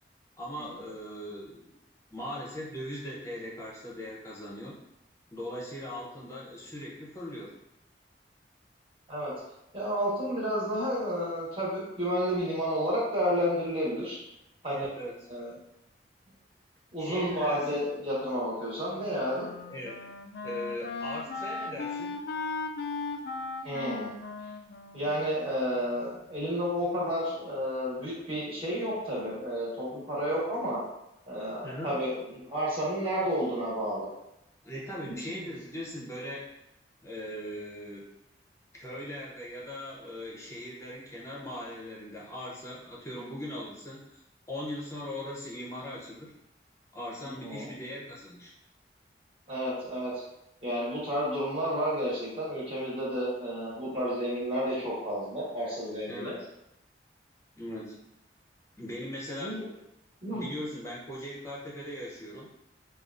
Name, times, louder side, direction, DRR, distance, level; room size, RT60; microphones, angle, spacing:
voice 1, 0.4-1.7 2.1-4.8 5.3-7.5 14.7-15.2 17.0-17.9 19.7-20.0 20.4-22.2 31.6-32.0 34.6-36.5 37.0-38.1 38.7-44.2 44.5-46.3 46.9-48.5 56.1-56.5 57.6-58.0 58.8-59.6 60.3-62.5, left 1 dB, 15° left, -4 dB, 0.6 m, -39 dB
voice 2, 9.7-14.2 14.6-14.9 15.3-15.5 16.9-19.5 23.6-24.1 24.9-30.8 31.3-34.1 35.1-35.4 47.2-47.7 49.5-50.1 50.6-56.4 59.4-59.7 60.2-60.5, equal, 30° right, -7 dB, 1.3 m, -31 dB
Wind instrument woodwind instrument, 18.9-26.0, left 4 dB, 60° left, 0.3 m, -38 dB
5.0 x 2.4 x 2.4 m, 0.86 s
head